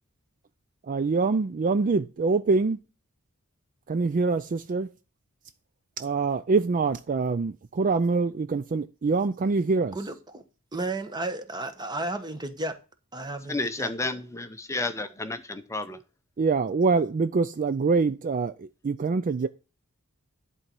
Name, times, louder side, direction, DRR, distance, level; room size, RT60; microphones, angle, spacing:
voice 1, 0.9-2.8 3.9-4.9 6.0-10.0 16.4-19.5, right 4 dB, 40° right, 0.4 m, -25 dB
voice 2, 9.9-10.4 10.7-12.7 13.1-13.9, right 2 dB, 20° right, 1.1 m, -33 dB
voice 3, 13.5-16.0, left 2 dB, 15° left, 0.7 m, -31 dB
11.0 x 4.2 x 7.6 m
head